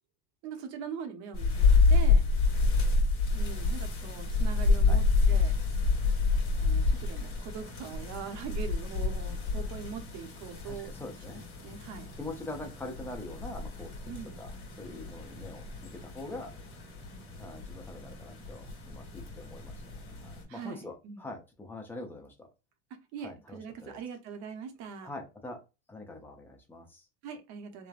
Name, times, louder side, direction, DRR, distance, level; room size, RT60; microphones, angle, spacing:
voice 1, 0.4-2.3 3.3-5.6 6.5-10.9 11.3-12.1 14.1-14.4 20.5-21.3 23.1-25.1 27.2-27.9, right 7 dB, 55° right, 0.8 m, -42 dB
sound 1, 1.3-20.4, left 4 dB, 40° left, 1.3 m, -29 dB
voice 2, 10.6-11.5 12.2-13.9 14.4-16.5 17.4-22.5 23.2-24.0 25.0-25.6 25.9-27.1, left 2 dB, 5° left, 0.6 m, -44 dB
3.2 x 2.1 x 2.4 m
supercardioid pair, 125°, 34 cm